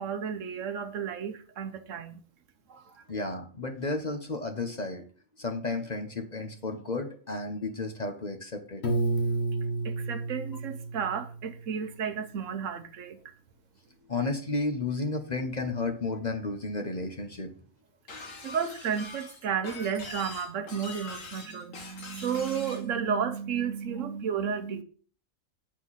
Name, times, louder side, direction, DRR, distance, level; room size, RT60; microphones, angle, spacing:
voice 1, 0.0-2.2 2.7-3.0 9.8-13.2 18.4-24.8, right 7 dB, 70° right, 1.1 m, -32 dB
voice 2, 3.1-5.0 5.4-8.8 14.1-17.5 18.1-18.3, left 3 dB, 40° left, 0.9 m, -32 dB
Piano, 8.8-11.8, right 2 dB, 55° left, 1.5 m, -30 dB
Shatter, 18.1-22.9, left 3 dB, 75° left, 1.8 m, -43 dB
8.0 x 4.5 x 5.6 m
omnidirectional pair, 1.4 m